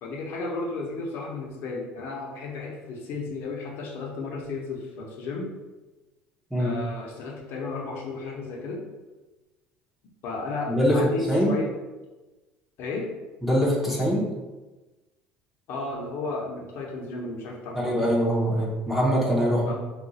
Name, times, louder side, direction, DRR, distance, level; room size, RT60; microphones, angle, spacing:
voice 1, 0.0-5.5 6.6-8.9 10.2-11.7 12.8-13.1 15.7-18.1 19.7-19.8, left 3 dB, 65° left, -1 dB, 0.7 m, -33 dB
voice 2, 10.7-11.0 11.3-11.5 13.4-14.3 17.7-19.7, equal, 5° right, -4 dB, 0.7 m, -23 dB
2.4 x 2.3 x 4.0 m, 1.2 s
cardioid pair, 120°, 4 cm